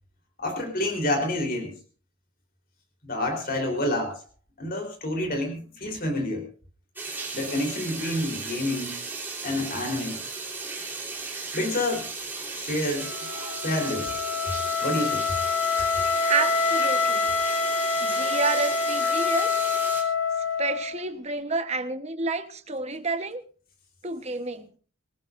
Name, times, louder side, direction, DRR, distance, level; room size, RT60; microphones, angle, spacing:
voice 1, 0.4-1.7 3.0-4.2 4.6-6.4 7.3-9.0 9.4-10.2 11.2-11.3 11.5-12.1 12.5-13.1 13.6-14.1 14.8-15.3, left 1 dB, 45° left, 3 dB, 4.0 m, -28 dB
sound 1, 7.0-20.0, right 4 dB, 10° right, 3.3 m, -35 dB
Wind instrument woodwind instrument, 13.0-21.0, left 4 dB, 65° left, 2.5 m, -26 dB
voice 2, 13.3-13.6 16.3-17.3 18.0-19.7 20.6-23.4 24.0-24.7, right 3 dB, 30° right, 7 dB, 1.2 m, -29 dB
24.5 x 15.0 x 2.6 m, 0.39 s
head